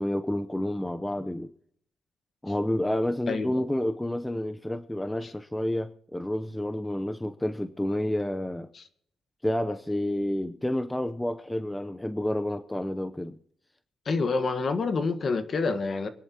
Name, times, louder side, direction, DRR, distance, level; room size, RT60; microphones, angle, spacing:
voice 1, 0.0-1.5 2.4-8.7 9.4-13.4, left 1 dB, 10° left, 9 dB, 0.7 m, -29 dB
voice 2, 3.3-3.6 5.2-5.3 8.7-8.8 14.0-16.1, left 4 dB, 45° left, 9 dB, 1.5 m, -27 dB
24.5 x 10.5 x 2.9 m, 0.65 s
cardioid pair, 90°, 0 cm